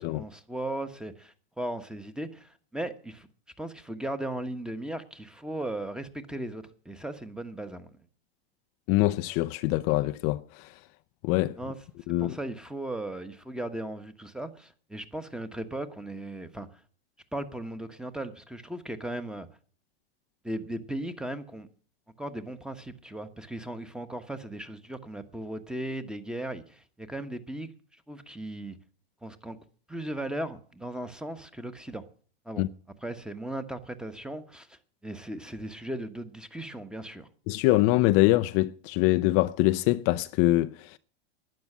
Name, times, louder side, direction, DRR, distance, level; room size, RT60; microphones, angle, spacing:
voice 1, 0.0-3.3 3.6-7.9 11.6-11.8 12.2-16.8 17.3-19.5 20.4-21.7 22.2-27.7 28.1-28.8 29.2-29.6 29.9-32.0 32.4-32.6 33.0-34.8 35.0-37.3, right 1 dB, 5° right, 1.2 m, -37 dB
voice 2, 8.9-10.7 11.2-11.6 12.1-12.4 32.6-32.7 37.5-41.0, left 18 dB, 45° left, 0.6 m, -24 dB
12.0 x 9.7 x 7.3 m
hypercardioid pair, 115°, 30 cm